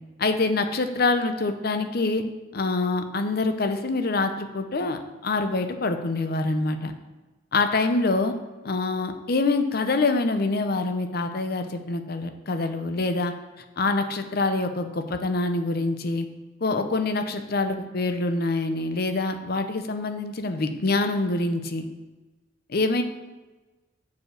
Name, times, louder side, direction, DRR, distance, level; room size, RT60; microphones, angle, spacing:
voice 1, 0.2-2.2 2.5-6.9 7.5-8.3 8.6-13.3 13.8-16.3 16.6-21.9 22.7-23.0, left 3 dB, 50° left, 8 dB, 0.6 m, -25 dB
6.8 x 4.9 x 6.3 m, 1.2 s
head